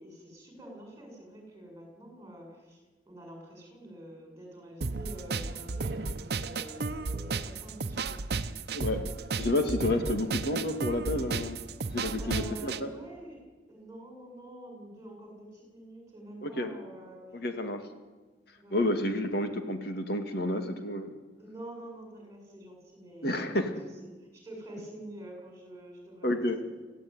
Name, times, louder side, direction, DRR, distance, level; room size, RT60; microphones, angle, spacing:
voice 1, 0.0-8.2 9.0-9.1 11.9-13.4 13.7-17.3 18.6-18.8 21.4-23.5 24.0-26.3, right 1 dB, 15° right, 1 dB, 7.2 m, -47 dB
sound 1, 4.8-12.8, right 3 dB, 60° right, 0.9 m, -34 dB
voice 2, 9.4-11.6 11.9-12.9 16.4-16.7 17.3-17.8 18.7-21.1 23.2-23.7 26.2-26.6, left 1 dB, 60° left, 6 dB, 2.4 m, -30 dB
25.0 x 15.5 x 9.6 m, 1.3 s
head